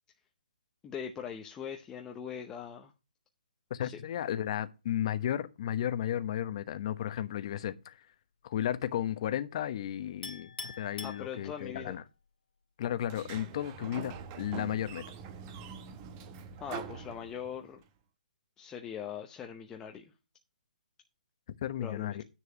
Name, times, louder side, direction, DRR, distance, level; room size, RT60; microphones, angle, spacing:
voice 1, 0.8-2.9 3.8-4.0 11.0-12.0 16.6-17.8 18.6-20.1 21.8-22.2, left 8 dB, 10° left, 0.7 m, -41 dB
voice 2, 3.7-8.0 8.4-12.0 12.8-15.0 21.6-22.2, left 11 dB, 40° left, 1.0 m, -34 dB
Chink clink, 10.2-11.9, left 4 dB, 70° left, 2.4 m, -44 dB
Sliding door, 13.0-17.8, right 6 dB, 25° right, 0.9 m, -44 dB
9.9 x 4.7 x 6.1 m
hypercardioid pair, 155°, 5 cm